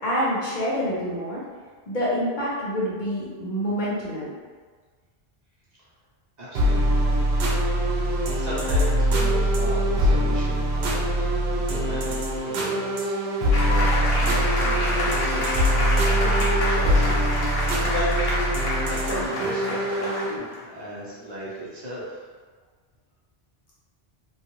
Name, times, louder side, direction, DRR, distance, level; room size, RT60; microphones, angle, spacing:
voice 1, 0.0-1.4 1.9-4.3, equal, 50° left, -7 dB, 0.8 m, -27 dB
voice 2, 6.4-7.0 8.1-11.3 11.5-12.2 12.4-18.3 18.9-22.2, equal, 45° right, -8 dB, 0.8 m, -36 dB
sound 1, 6.5-20.4, equal, 80° right, 0.8 m, -23 dB
sound 2, 13.5-20.6, left 1 dB, 70° left, 1.0 m, -28 dB
3.0 x 2.4 x 3.0 m, 1.5 s
omnidirectional pair, 1.1 m